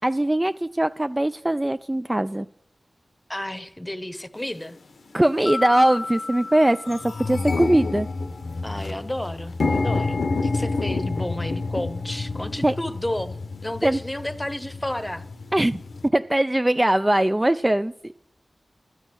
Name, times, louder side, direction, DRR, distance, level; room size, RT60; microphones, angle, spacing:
voice 1, 0.0-2.5 5.1-8.1 12.6-12.7 13.8-14.0 15.5-15.8 16.1-18.1, right 1 dB, 20° right, 11 dB, 0.3 m, -21 dB
voice 2, 3.3-4.8 8.6-15.2, left 1 dB, 15° left, 12 dB, 0.9 m, -32 dB
sound 1, 4.5-4.6 5.4-5.6 6.0-6.1 6.4-16.1, left 3 dB, 85° left, 0.8 m, -29 dB
Mallet percussion, 5.5-7.8, left 3 dB, 55° left, 0.4 m, -33 dB
12.0 x 8.0 x 6.1 m, 0.71 s
cardioid pair, 50°, 0 cm